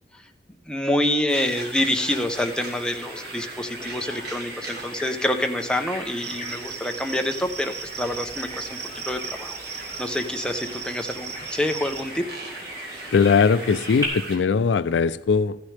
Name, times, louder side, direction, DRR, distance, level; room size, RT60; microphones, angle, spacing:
voice 1, 0.7-8.8 9.1-12.2, left 1 dB, 5° left, 0.7 m, -27 dB
sound 1, 1.3-14.4, right 2 dB, 60° right, 1.9 m, -40 dB
Bird vocalization bird call bird song, 2.3-14.1, equal, 25° right, 4.1 m, -40 dB
Cricket, 6.2-12.0, right 6 dB, 40° right, 0.8 m, -37 dB
voice 2, 13.1-15.6, left 5 dB, 80° left, 0.4 m, -20 dB
14.5 x 9.5 x 3.3 m
head